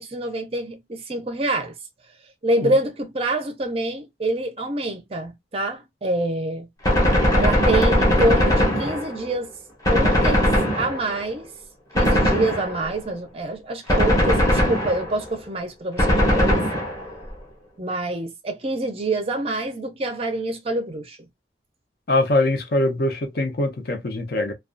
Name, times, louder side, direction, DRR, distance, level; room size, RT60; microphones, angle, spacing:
voice 1, 0.0-1.7 2.4-6.7 7.3-9.5 9.9-10.5 10.8-11.5 11.9-16.6 17.8-21.2, right 1 dB, 30° right, 0.5 m, -26 dB
Gunshot gunfire, 6.8-9.3 9.9-11.3 12.0-13.0 13.9-15.3 16.0-17.2, equal, 20° left, 0.7 m, -20 dB
voice 2, 22.1-24.5, left 2 dB, 55° left, 0.6 m, -22 dB
2.3 x 2.3 x 2.4 m
head